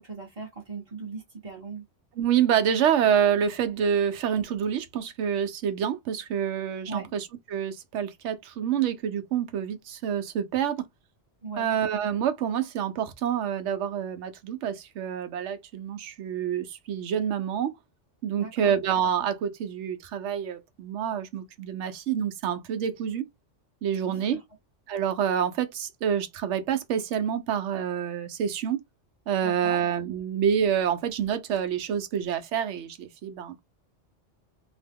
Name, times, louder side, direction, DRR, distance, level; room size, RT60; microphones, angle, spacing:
voice 1, 0.0-1.8 6.9-7.1 11.4-11.7 18.4-18.7 24.1-24.4 29.4-29.8, right 4 dB, 30° right, 1.0 m, -38 dB
voice 2, 2.2-10.8 11.6-17.7 18.2-23.2 23.8-24.4 24.9-28.8 29.3-33.6, right 8 dB, 75° right, 0.9 m, -27 dB
2.9 x 2.1 x 3.4 m
omnidirectional pair, 1.3 m